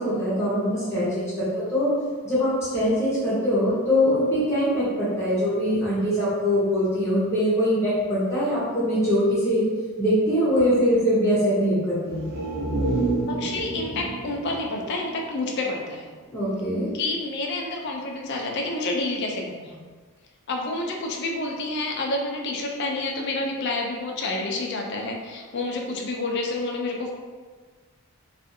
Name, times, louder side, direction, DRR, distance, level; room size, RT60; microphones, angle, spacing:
voice 1, 0.0-1.9 2.2-9.6 10.0-12.3 16.3-16.9, equal, 10° left, -11 dB, 0.8 m, -23 dB
sound 1, 12.1-15.8 16.2-16.3, right 2 dB, 45° right, 0.3 m, -29 dB
voice 2, 13.3-16.1 17.0-19.8 20.5-27.1, left 2 dB, 50° left, 0 dB, 0.4 m, -29 dB
2.5 x 2.4 x 2.6 m, 1.5 s
head